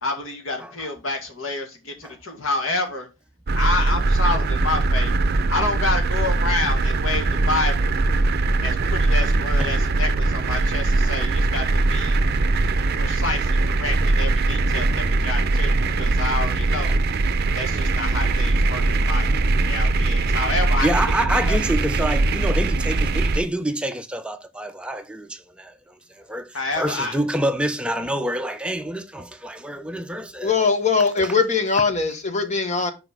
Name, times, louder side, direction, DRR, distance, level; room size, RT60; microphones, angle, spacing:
voice 1, 0.0-3.1 3.5-5.1 5.5-7.9 8.6-12.2 13.0-17.0 17.5-21.0 21.5-21.6 26.5-27.2, left 3 dB, 85° left, 1.9 m, -28 dB
sound 1, 3.5-23.4, right 3 dB, 50° right, 0.5 m, -21 dB
voice 2, 20.8-30.5 31.2-31.3, right 1 dB, 5° right, 0.6 m, -27 dB
voice 3, 30.4-32.9, left 5 dB, 35° left, 1.1 m, -21 dB
6.0 x 4.9 x 4.7 m
head